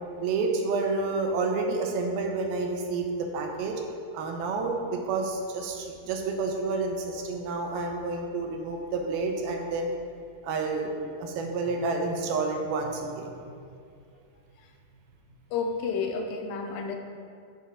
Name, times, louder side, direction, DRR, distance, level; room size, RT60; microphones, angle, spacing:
voice 1, 0.2-3.8 4.1-9.9 10.4-10.9 11.2-13.5, right 3 dB, 85° right, 2 dB, 2.8 m, -29 dB
voice 2, 15.5-17.0, left 5 dB, 80° left, 3 dB, 2.4 m, -30 dB
7.6 x 6.7 x 4.7 m, 2.3 s
omnidirectional pair, 4.3 m